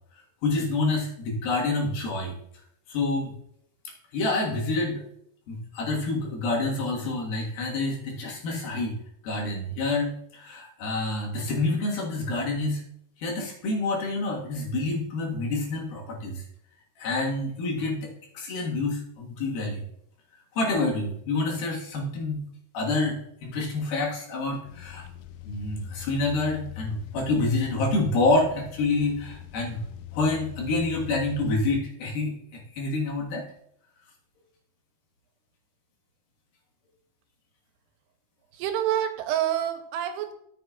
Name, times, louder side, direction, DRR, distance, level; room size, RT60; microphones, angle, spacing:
voice 1, 0.4-2.3 2.9-3.3 4.1-5.0 5.5-8.9 9.2-12.8 13.2-16.4 17.0-19.8 20.6-22.5 22.7-25.0 25.4-29.8 30.1-33.4, left 2 dB, 65° left, -2 dB, 3.3 m, -27 dB
sound 1, 24.7-31.8, left 14 dB, 80° left, 2.2 m, -42 dB
voice 2, 38.5-40.3, right 11 dB, 85° right, 7 dB, 2.9 m, -27 dB
13.5 x 7.4 x 2.4 m, 0.73 s
omnidirectional pair, 4.7 m